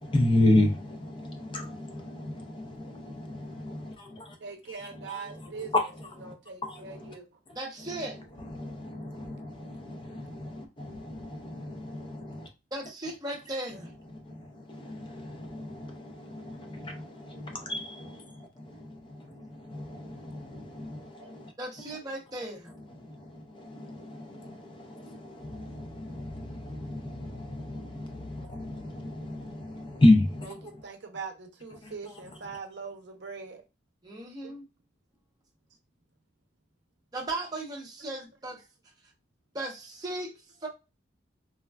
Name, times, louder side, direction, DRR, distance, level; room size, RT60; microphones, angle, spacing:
voice 1, 0.0-4.4 4.7-6.3 6.6-7.2 7.5-7.6 7.8-12.5 13.8-21.5 21.8-21.9 22.7-30.8 31.8-32.2, left 1 dB, 25° left, 0.4 m, -32 dB
voice 2, 4.4-5.7 6.2-7.3 17.6-17.7 21.2-21.4 22.1-22.2 28.4-28.5 30.5-33.6 34.4-34.5, right 5 dB, 65° right, 0.6 m, -42 dB
voice 3, 7.6-8.2 12.7-13.9 21.6-22.7 34.0-34.7 37.1-38.6 39.5-40.3 40.6-40.7, right 2 dB, 20° right, 0.7 m, -36 dB
3.4 x 2.1 x 2.2 m
head